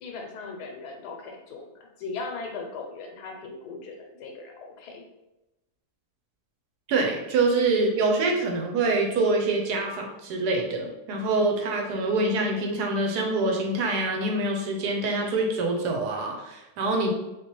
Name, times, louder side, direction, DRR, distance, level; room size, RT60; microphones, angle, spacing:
voice 1, 0.0-5.0, left 4 dB, 85° left, 2 dB, 1.2 m, -38 dB
voice 2, 6.9-17.1, right 2 dB, 85° right, 1 dB, 1.2 m, -25 dB
3.3 x 2.8 x 2.9 m, 0.98 s
omnidirectional pair, 1.7 m